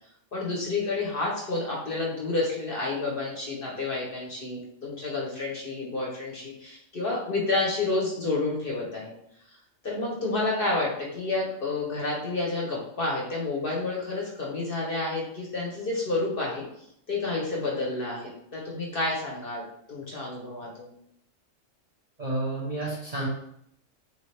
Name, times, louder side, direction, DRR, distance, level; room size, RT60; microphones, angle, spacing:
voice 1, 0.3-9.1 9.8-16.6 17.1-20.9, left 3 dB, 50° left, -3 dB, 0.8 m, -30 dB
voice 2, 22.2-23.3, right 2 dB, 35° right, -5 dB, 0.7 m, -30 dB
3.3 x 2.8 x 3.2 m, 0.74 s
omnidirectional pair, 1.4 m